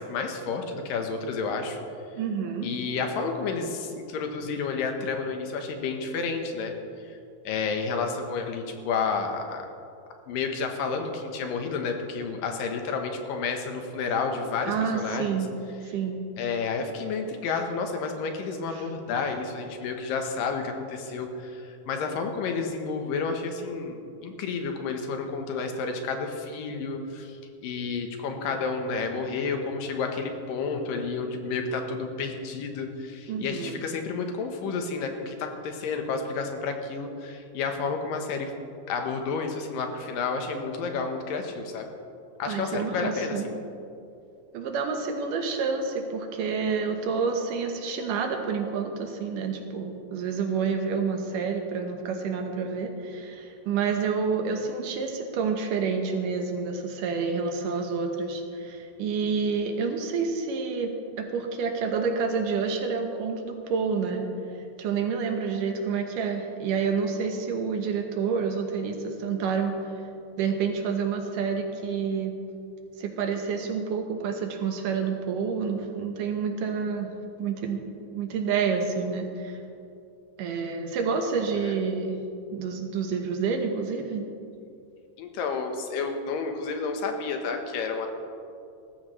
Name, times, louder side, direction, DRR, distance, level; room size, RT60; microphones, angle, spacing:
voice 1, 0.0-1.8 2.6-6.7 7.0-7.2 7.4-9.6 10.3-15.4 16.4-38.5 38.9-41.9 42.4-43.6 81.6-81.7 85.2-88.1, left 4 dB, 80° left, 4 dB, 2.8 m, -30 dB
voice 2, 2.1-2.7 14.6-15.5 15.9-16.2 18.7-18.9 33.3-33.8 42.5-43.5 44.5-64.2 64.8-70.0 70.4-72.3 73.0-77.1 77.4-77.8 78.1-79.6 80.4-82.2 82.5-84.2, right 5 dB, 75° right, 3 dB, 2.7 m, -28 dB
18.0 x 14.0 x 3.2 m, 2.5 s
omnidirectional pair, 3.9 m